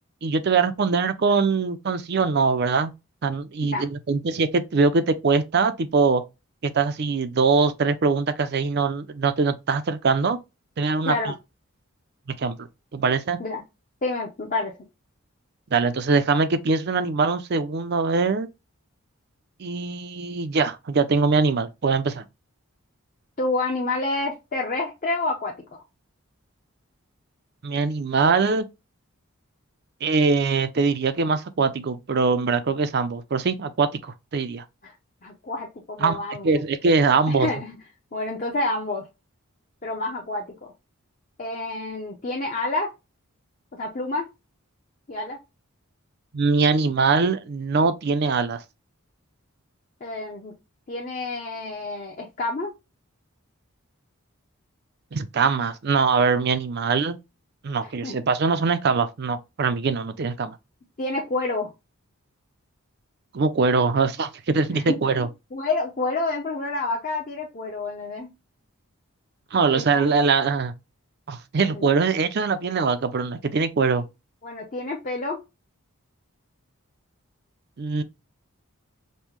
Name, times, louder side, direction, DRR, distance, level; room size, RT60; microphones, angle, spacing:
voice 1, 0.2-2.9 3.2-6.2 6.6-10.4 10.8-11.1 12.4-12.7 12.9-13.4 15.7-18.5 19.6-22.3 27.6-28.6 30.0-34.6 36.0-36.2 36.4-37.5 46.3-48.6 55.1-57.2 57.6-60.6 63.3-65.3 69.5-70.7 71.3-74.0 77.8-78.0, right 4 dB, 50° right, 0.4 m, -22 dB
voice 2, 14.0-14.7 23.4-25.8 34.8-34.9 35.2-36.6 37.3-37.8 38.1-39.1 39.8-40.7 41.4-42.9 43.7-44.3 45.1-45.4 50.0-50.5 50.9-52.7 57.8-58.2 61.0-61.7 64.7-68.3 69.7-70.1 71.6-71.9 74.4-75.4, left 2 dB, 35° left, 0.7 m, -29 dB
5.3 x 2.1 x 3.0 m
head